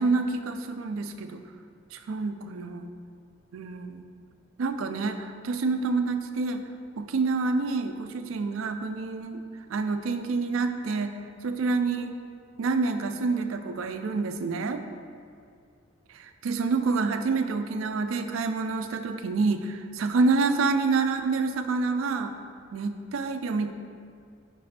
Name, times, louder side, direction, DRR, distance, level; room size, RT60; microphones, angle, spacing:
voice 1, 0.0-1.4 1.9-2.9 3.5-4.1 4.6-6.6 7.0-9.4 9.7-12.1 12.6-14.8 16.1-22.3 22.7-23.7, right 4 dB, 75° right, 7 dB, 0.4 m, -27 dB
5.1 x 4.3 x 4.9 m, 2.3 s
head